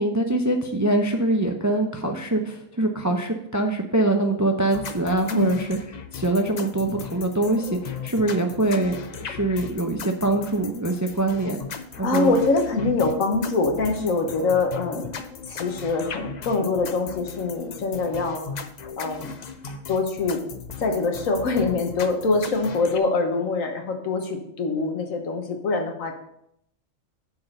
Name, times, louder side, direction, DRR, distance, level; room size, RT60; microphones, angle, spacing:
voice 1, 0.0-11.6 12.0-12.4 14.0-14.2, right 2 dB, 20° right, 4 dB, 0.4 m, -24 dB
sound 1, 4.7-23.0, left 6 dB, 50° left, 0.5 m, -37 dB
voice 2, 5.3-5.6 12.0-15.1 15.5-18.5 19.0-19.3 19.9-20.4 20.8-26.1, left 3 dB, 80° left, 4 dB, 1.6 m, -24 dB
7.5 x 4.7 x 6.6 m, 0.75 s
omnidirectional pair, 1.4 m